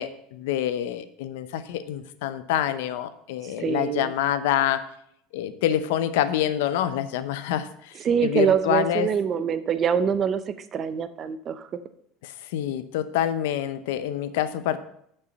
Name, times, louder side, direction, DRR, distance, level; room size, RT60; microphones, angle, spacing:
voice 1, 0.0-4.8 5.3-7.9 8.2-9.1 12.2-14.8, left 11 dB, 85° left, 12 dB, 0.7 m, -26 dB
voice 2, 3.6-4.1 8.0-11.7, right 7 dB, 25° right, 12 dB, 0.5 m, -24 dB
6.9 x 5.4 x 6.7 m, 0.72 s
cardioid pair, 170°, 0 cm